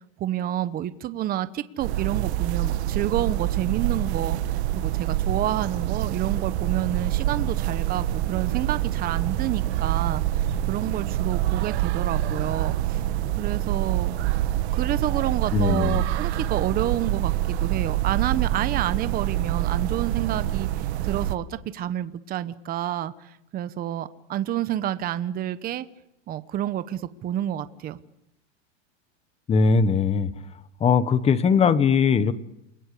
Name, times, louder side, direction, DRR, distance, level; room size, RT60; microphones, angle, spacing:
voice 1, 0.2-13.0 13.4-14.1 14.7-25.9 26.3-28.0, right 12 dB, 25° right, 12 dB, 1.0 m, -29 dB
sound 1, 1.8-21.3, right 13 dB, 60° right, 1.7 m, -26 dB
voice 2, 15.5-16.0 29.5-30.3 30.8-32.3, left 5 dB, 15° left, 14 dB, 1.2 m, -20 dB
29.0 x 22.0 x 8.4 m, 0.84 s
supercardioid pair, 150°, 36 cm